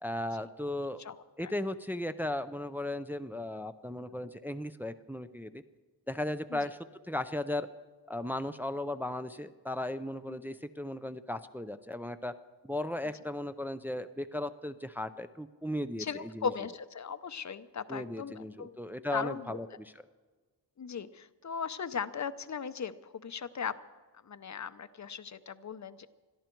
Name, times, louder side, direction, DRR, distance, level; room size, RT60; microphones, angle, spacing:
voice 1, 0.0-1.0 1.4-5.6 6.1-6.8 7.1-7.7 8.1-12.3 12.6-16.5 17.9-19.9, left 1 dB, 5° right, 9 dB, 0.4 m, -36 dB
voice 2, 16.0-18.8 19.1-19.6 20.8-23.7 24.2-26.1, left 6 dB, 40° left, 13 dB, 0.7 m, -38 dB
22.0 x 13.5 x 4.5 m, 1.4 s
wide cardioid pair, 140°, 42 cm